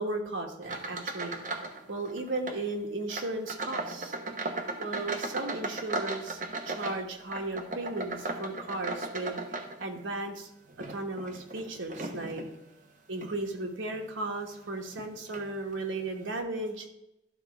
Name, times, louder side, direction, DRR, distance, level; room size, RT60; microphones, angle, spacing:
voice 1, 0.0-1.4 1.9-4.1 4.8-6.4 6.7-9.4 9.8-10.5 10.9-12.4 13.1-16.9, right 2 dB, 90° right, 3 dB, 1.3 m, -35 dB
sound 1, 0.6-2.6 3.1-10.2 10.7-12.5 13.1-13.4 13.9-14.0 14.9-15.0 15.3-15.5, right 2 dB, 40° right, 0.9 m, -36 dB
12.0 x 4.0 x 4.6 m, 0.88 s
head